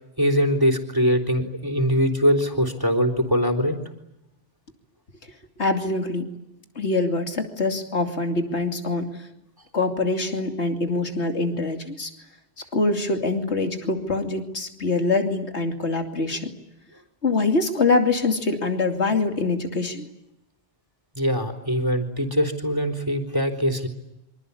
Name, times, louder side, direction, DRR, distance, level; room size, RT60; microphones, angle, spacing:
voice 1, 0.2-3.7 21.2-23.9, equal, 20° right, 6 dB, 3.8 m, -22 dB
voice 2, 5.6-6.3 6.7-9.3 9.7-12.1 12.7-16.5 17.2-20.1, left 3 dB, 75° left, 5 dB, 3.0 m, -24 dB
27.0 x 25.5 x 8.5 m, 0.89 s
omnidirectional pair, 1.1 m